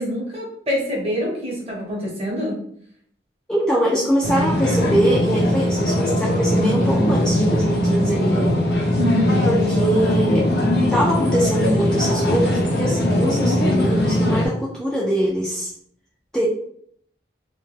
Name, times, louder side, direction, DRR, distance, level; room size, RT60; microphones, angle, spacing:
voice 1, 0.0-2.6 9.0-9.5, equal, 35° right, -3 dB, 0.8 m, -25 dB
voice 2, 3.5-8.5 9.5-10.5 10.9-15.7 16.3-16.5, equal, 5° left, -5 dB, 0.3 m, -22 dB
sound 1, 4.2-14.5, left 1 dB, 60° left, 0.6 m, -20 dB
2.1 x 2.1 x 3.1 m, 0.63 s
head